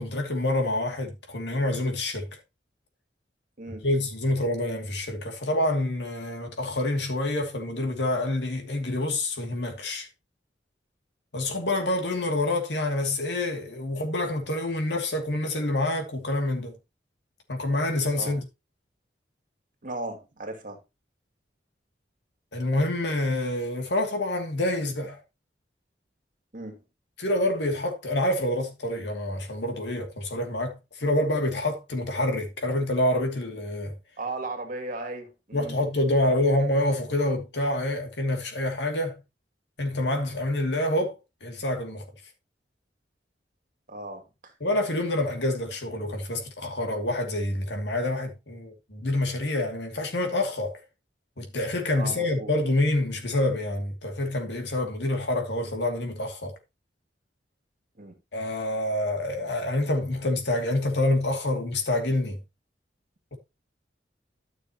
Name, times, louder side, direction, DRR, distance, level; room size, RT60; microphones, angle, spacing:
voice 1, 0.0-2.3 3.8-10.1 11.3-16.7 17.5-18.4 22.5-25.2 27.2-33.9 35.5-39.2 39.8-42.1 44.6-50.8 51.4-56.5 58.3-62.4 63.3-63.4, left 1 dB, 75° left, 2.6 m, -27 dB
voice 2, 19.8-20.8 26.5-26.8 34.2-35.8 36.2-36.3 43.9-44.5 52.0-52.5 58.0-58.2, right 2 dB, 50° right, 2.5 m, -36 dB
13.0 x 6.6 x 3.0 m
head